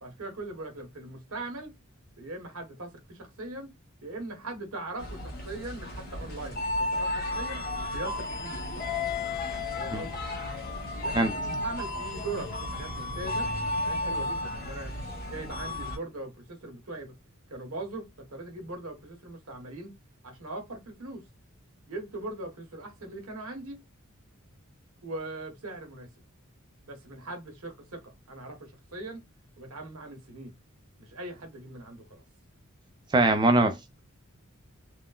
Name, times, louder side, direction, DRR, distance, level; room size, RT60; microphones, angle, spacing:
voice 1, 0.0-1.7 2.2-3.7 4.0-7.6 7.9-8.6 8.9-9.1 9.7-10.4 11.0-13.5 13.8-14.9 15.2-17.2 17.5-19.9 20.2-21.2 21.9-23.8 25.0-26.1 26.8-29.2 29.6-30.5 31.0-32.2, right 2 dB, 80° right, 1.3 m, -40 dB
sound 1, 5.0-16.0, left 2 dB, 45° left, 1.1 m, -33 dB
voice 2, 11.1-11.6 33.1-34.0, right 2 dB, 20° right, 0.4 m, -24 dB
3.6 x 2.1 x 2.4 m
head